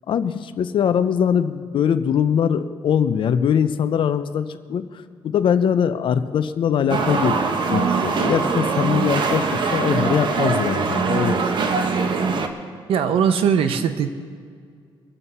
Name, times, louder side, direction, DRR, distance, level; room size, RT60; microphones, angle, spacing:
voice 1, 0.1-7.4 7.7-11.7, left 8 dB, 65° left, 11 dB, 0.8 m, -22 dB
sound 1, 6.9-12.5, right 4 dB, 60° right, 1.3 m, -22 dB
voice 2, 12.9-14.1, right 7 dB, 85° right, 9 dB, 1.0 m, -19 dB
23.0 x 7.9 x 5.6 m, 2.1 s
cardioid pair, 115°, 9 cm